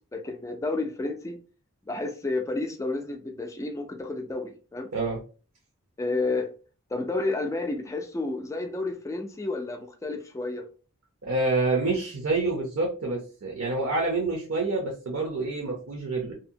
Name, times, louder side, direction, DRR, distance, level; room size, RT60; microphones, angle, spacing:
voice 1, 0.1-1.4 1.9-4.9 6.0-6.5 6.9-10.6, left 2 dB, 15° left, 0.4 m, -31 dB
voice 2, 11.2-16.3, right 3 dB, 70° right, 0.7 m, -27 dB
2.7 x 2.1 x 2.6 m
head